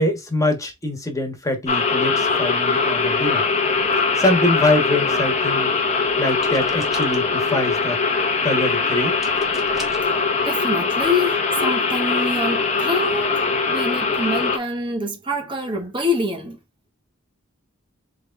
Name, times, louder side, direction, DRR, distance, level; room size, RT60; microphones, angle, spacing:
voice 1, 0.0-3.4 4.2-5.7 6.2-8.0 8.4-9.2, left 1 dB, 15° left, 1.3 m, -23 dB
sound 1, 1.7-14.6, left 4 dB, 35° left, 0.9 m, -21 dB
sound 2, 6.3-7.4 9.2-10.1 11.1-11.2 11.6-11.8, equal, ahead, 1.2 m, -39 dB
voice 2, 10.4-16.6, left 1 dB, 25° right, 1.3 m, -26 dB
3.9 x 3.4 x 3.4 m
head